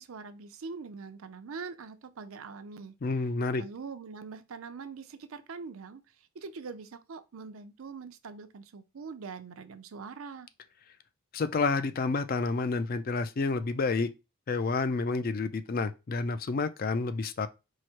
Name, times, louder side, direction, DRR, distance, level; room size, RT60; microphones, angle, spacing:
voice 1, 0.0-2.9 3.6-6.0 6.3-10.5, right 5 dB, 75° right, 0.5 m, -43 dB
voice 2, 3.0-3.6 11.3-14.1 14.5-17.5, left 4 dB, 45° left, 0.4 m, -29 dB
4.7 x 2.1 x 4.3 m
head